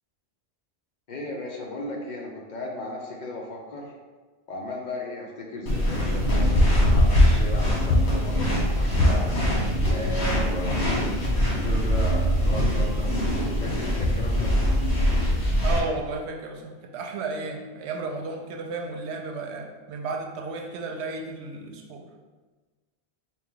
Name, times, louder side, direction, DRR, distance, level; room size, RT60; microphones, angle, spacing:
voice 1, 1.1-3.9 4.5-9.5 9.9-11.1 11.4-14.5, left 1 dB, 55° left, -1 dB, 0.6 m, -35 dB
sound 1, 5.7-15.8, equal, 80° left, 1.3 m, -22 dB
voice 2, 15.6-22.1, right 3 dB, 90° right, 3 dB, 0.9 m, -33 dB
4.2 x 2.2 x 3.7 m, 1.3 s
omnidirectional pair, 1.1 m